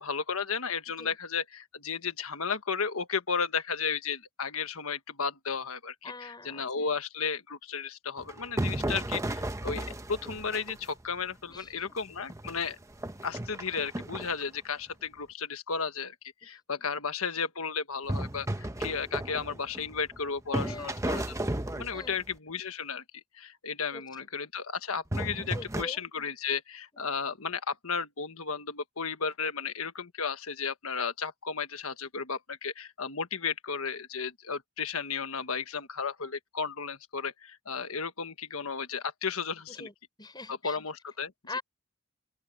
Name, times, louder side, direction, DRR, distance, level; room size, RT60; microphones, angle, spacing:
voice 1, 0.0-12.8 13.2-16.1 16.4-21.4 21.8-23.0 23.4-39.9 40.5-41.3, left 5 dB, 70° left, 1.5 m, -34 dB
voice 2, 6.0-6.6 8.9-9.2 11.5-11.7 16.4-16.6 20.6-21.1 21.9-22.2 23.9-24.0 25.5-26.0 26.9-27.1 39.7-40.8 41.5-41.6, left 2 dB, 20° left, 6.2 m, -43 dB
sound 1, 8.2-11.0 11.5-11.6 12.2-14.4 18.1-20.2 20.5-22.3 25.1-25.8, right 1 dB, 15° right, 1.0 m, -34 dB
open air
head